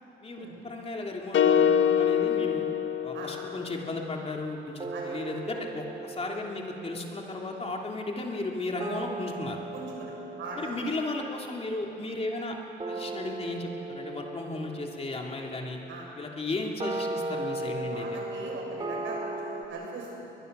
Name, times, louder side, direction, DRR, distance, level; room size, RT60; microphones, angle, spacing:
voice 1, 0.2-2.6 3.0-9.6 10.5-12.6 12.9-15.8 16.1-18.2, left 2 dB, 30° left, 0 dB, 3.0 m, -35 dB
sound 1, 1.3-3.7, left 8 dB, 70° left, 1.3 m, -24 dB
sound 2, 2.7-4.0 4.8-19.6, right 2 dB, 25° right, 2.7 m, -39 dB
voice 2, 9.7-10.1 10.4-10.8 15.9-16.1 17.9-20.1, right 3 dB, 75° right, -1 dB, 6.7 m, -40 dB
22.5 x 21.5 x 6.9 m, 2.9 s
cardioid pair, 90°, 20 cm